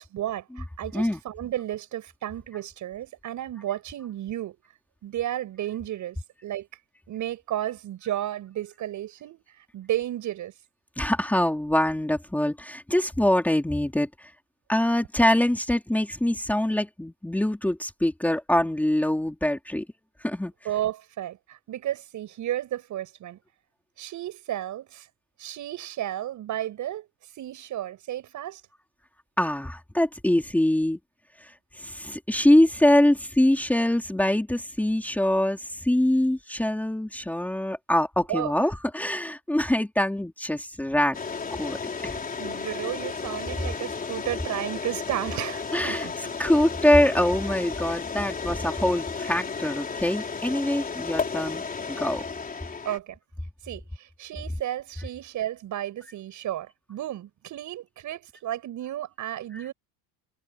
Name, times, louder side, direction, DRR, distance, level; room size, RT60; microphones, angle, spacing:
voice 1, 0.0-4.6 5.0-6.2 6.4-6.7 7.1-10.5 20.6-23.4 24.0-25.1 25.4-27.1 27.3-28.6 38.3-38.7 42.0-46.1 52.8-53.2 53.6-59.7, right 12 dB, 50° right, 7.5 m, -33 dB
voice 2, 11.0-14.3 14.7-19.9 20.2-20.5 29.4-31.0 31.4-41.2 41.5-41.8 42.0-42.2 45.7-46.1 46.4-52.2 59.5-59.6, left 1 dB, 5° left, 3.5 m, -24 dB
sound 1, 41.1-53.0, left 5 dB, 20° left, 4.3 m, -33 dB
cardioid pair, 135°, 38 cm